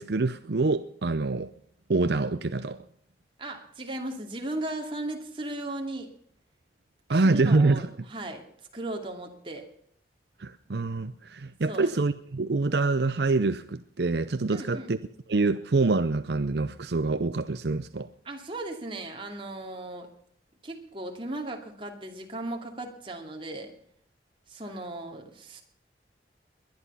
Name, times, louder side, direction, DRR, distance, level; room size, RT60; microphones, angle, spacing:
voice 1, 0.0-1.5 1.9-2.8 7.1-7.9 10.4-15.0 15.3-18.1, right 3 dB, 70° right, 12 dB, 0.6 m, -26 dB
voice 2, 3.4-6.1 7.1-8.4 8.7-9.7 11.7-11.9 14.5-14.9 18.2-20.1 20.6-23.7 24.5-25.6, right 1 dB, 30° right, 3 dB, 2.6 m, -36 dB
21.0 x 10.5 x 5.6 m, 0.68 s
head